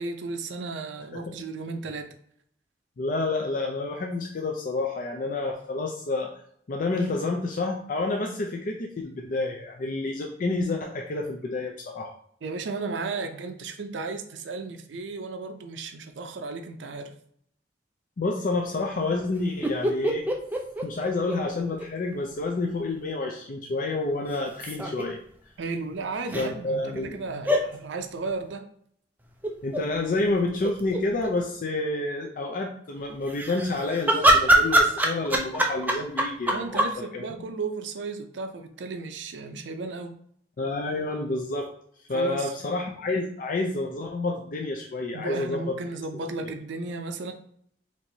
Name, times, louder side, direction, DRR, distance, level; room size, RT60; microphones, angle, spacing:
voice 1, 0.0-2.1 12.4-17.1 25.6-28.6 36.5-40.2 42.1-42.5 45.1-47.3, right 3 dB, 80° right, 0.5 m, -34 dB
voice 2, 3.0-6.3 6.7-12.1 18.2-20.2 20.8-25.2 26.3-27.2 29.6-37.3 40.6-41.7 42.1-45.7 46.4-46.5, left 2 dB, 45° left, 0.4 m, -29 dB
sound 1, 19.6-21.9 22.1-22.2 24.3-25.0 26.3-26.5 27.5-27.7 29.4-29.8 30.3-30.4 30.6-31.3 33.3-36.9, right 1 dB, 10° right, 0.4 m, -23 dB
4.4 x 2.9 x 2.7 m
head